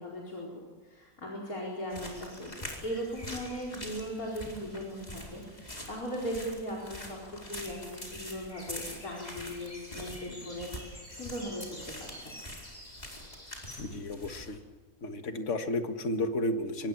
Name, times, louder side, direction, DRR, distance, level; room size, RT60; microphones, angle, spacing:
voice 1, 0.0-2.5 2.8-12.3, equal, 80° left, -2 dB, 5.1 m, -38 dB
sound 1, 1.9-14.6, left 1 dB, 30° left, 4.8 m, -44 dB
voice 2, 13.8-14.6 15.0-16.9, left 1 dB, 55° left, 7 dB, 1.9 m, -32 dB
25.0 x 22.5 x 7.4 m, 1.3 s
omnidirectional pair, 1.5 m